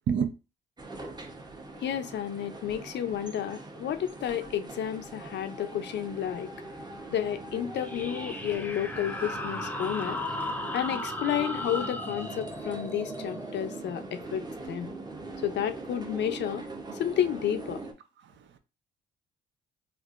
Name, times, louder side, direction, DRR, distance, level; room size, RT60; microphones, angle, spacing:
sound 1, 0.8-17.9, right 2 dB, 20° right, 0.7 m, -41 dB
voice 1, 1.8-6.5 7.1-10.2 10.7-14.4 14.7-14.9 15.4-16.6 17.0-17.8, left 10 dB, 65° left, 0.5 m, -31 dB
sound 2, 7.7-15.0, left 2 dB, 10° left, 0.5 m, -37 dB
voice 2, 18.2-18.6, right 7 dB, 70° right, 0.6 m, -29 dB
4.3 x 2.4 x 2.5 m
cardioid pair, 90°, 20 cm